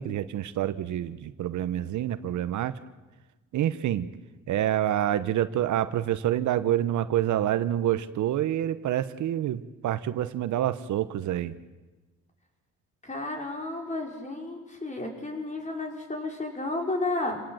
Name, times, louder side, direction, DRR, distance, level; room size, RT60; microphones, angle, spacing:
voice 1, 0.0-2.7 3.5-4.1 4.5-11.5, right 12 dB, 75° right, 13 dB, 1.1 m, -27 dB
voice 2, 13.0-17.4, left 2 dB, 25° left, 2 dB, 5.2 m, -32 dB
28.0 x 17.5 x 7.9 m, 1.2 s
cardioid pair, 90°, 30 cm